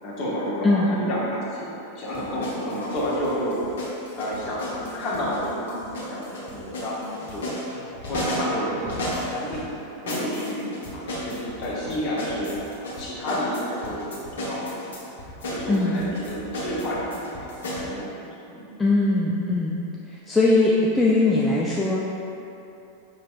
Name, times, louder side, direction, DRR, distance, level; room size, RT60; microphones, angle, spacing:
voice 1, 0.0-3.6 4.1-7.5 7.9-9.6 10.0-14.9 15.5-17.5 17.8-18.6, equal, 35° left, -7 dB, 1.0 m, -30 dB
sound 1, 2.1-9.6 10.1-17.9, left 1 dB, 60° left, 0.8 m, -34 dB
voice 2, 15.7-16.0 18.8-19.8 20.3-22.0, left 2 dB, 10° left, -5 dB, 0.3 m, -20 dB
5.4 x 3.0 x 2.4 m, 2.8 s
figure-of-eight pair, 90°, 0 cm